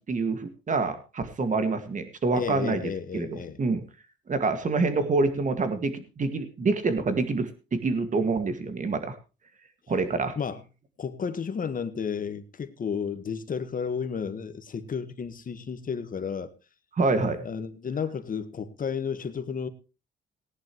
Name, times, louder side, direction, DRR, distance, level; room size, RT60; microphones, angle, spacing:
voice 1, 0.1-3.8 4.3-9.2 9.9-10.3 16.9-17.4, right 3 dB, 40° right, 2.0 m, -27 dB
voice 2, 2.3-3.6 10.4-10.6 11.0-16.5 17.4-19.7, left 6 dB, 45° left, 1.5 m, -32 dB
18.5 x 10.5 x 3.1 m
cardioid pair, 90°, 20 cm